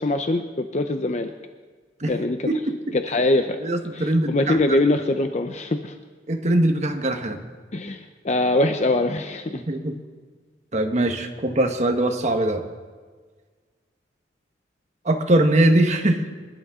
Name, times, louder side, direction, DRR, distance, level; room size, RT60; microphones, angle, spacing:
voice 1, 0.0-1.3 2.1-2.5 2.9-3.6 3.9-5.9 7.7-9.6, left 2 dB, 40° left, 6 dB, 0.6 m, -23 dB
voice 2, 2.5-2.9 3.6-4.6 6.3-7.5 9.5-10.0 10.7-12.6 15.0-16.2, right 1 dB, 40° right, 5 dB, 1.3 m, -21 dB
25.5 x 11.5 x 3.7 m, 1.5 s
head